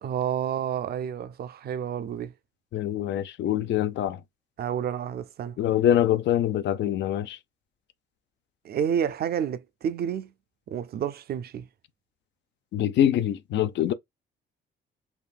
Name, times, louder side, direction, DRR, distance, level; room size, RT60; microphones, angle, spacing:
voice 1, 0.0-2.3 4.6-5.6 8.6-10.3 10.7-11.7, right 8 dB, 50° right, 0.4 m, -30 dB
voice 2, 2.7-4.2 5.6-7.4 12.7-13.9, left 11 dB, 65° left, 0.4 m, -24 dB
3.5 x 2.6 x 2.2 m
cardioid pair, 90°, 20 cm